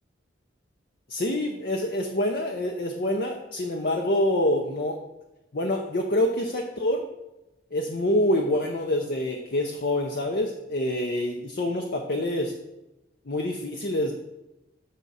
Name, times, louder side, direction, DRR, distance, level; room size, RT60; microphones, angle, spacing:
voice 1, 1.1-5.0 5.5-7.0 7.7-12.5 13.3-14.1, left 1 dB, 50° left, 2 dB, 0.5 m, -26 dB
7.0 x 3.7 x 5.4 m, 0.96 s
head